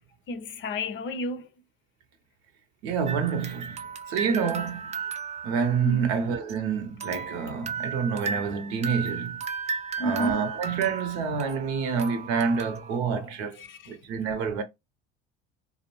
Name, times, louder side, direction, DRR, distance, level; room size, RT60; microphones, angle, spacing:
voice 1, 0.3-1.5 5.8-6.1 10.0-10.5 13.6-13.9, equal, 40° left, 0.6 m, -31 dB
voice 2, 2.8-4.9 5.4-9.4 10.0-13.6 13.9-14.6, right 6 dB, 70° right, 0.8 m, -28 dB
sound 1, 3.1-6.6 7.0-13.0, right 6 dB, 25° right, 0.4 m, -35 dB
2.5 x 2.0 x 2.9 m
hypercardioid pair, 80°, 29 cm